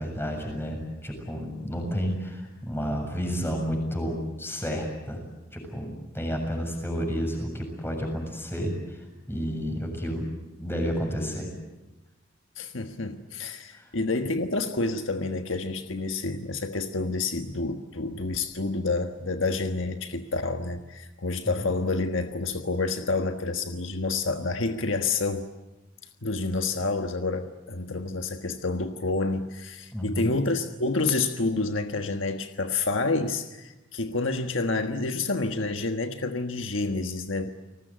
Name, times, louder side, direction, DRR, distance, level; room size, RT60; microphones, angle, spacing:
voice 1, 0.0-5.2 5.5-10.3 10.6-11.5 13.8-13.9 29.9-30.3, equal, 10° left, 3 dB, 7.2 m, -31 dB
voice 2, 12.6-25.5 26.2-37.5, left 3 dB, 70° left, 6 dB, 1.5 m, -28 dB
30.0 x 19.5 x 9.0 m, 1.0 s
head